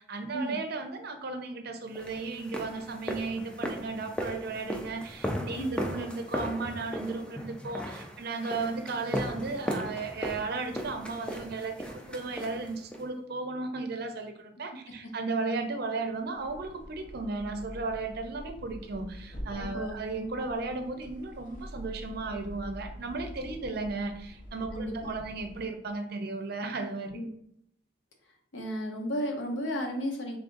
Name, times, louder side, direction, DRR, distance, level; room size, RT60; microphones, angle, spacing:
voice 1, 0.0-27.2, right 3 dB, 60° right, 6 dB, 0.5 m, -35 dB
sound 1, 2.0-13.1, equal, 5° left, 0.4 m, -37 dB
sound 2, 16.3-25.8, equal, 45° left, 0.8 m, -45 dB
voice 2, 19.6-20.0 24.7-25.1 27.1-27.3 28.5-30.4, equal, 80° left, 2 dB, 0.8 m, -33 dB
3.8 x 3.3 x 2.5 m, 0.73 s
head